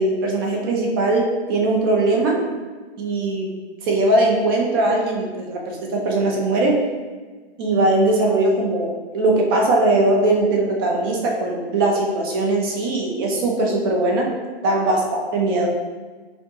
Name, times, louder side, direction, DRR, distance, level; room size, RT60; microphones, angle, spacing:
voice 1, 0.0-2.4 3.0-3.5 3.8-6.8 7.6-14.3 14.6-15.7, right 2 dB, 25° right, -1 dB, 0.4 m, -20 dB
4.3 x 2.4 x 2.7 m, 1.4 s
hypercardioid pair, 135°, 31 cm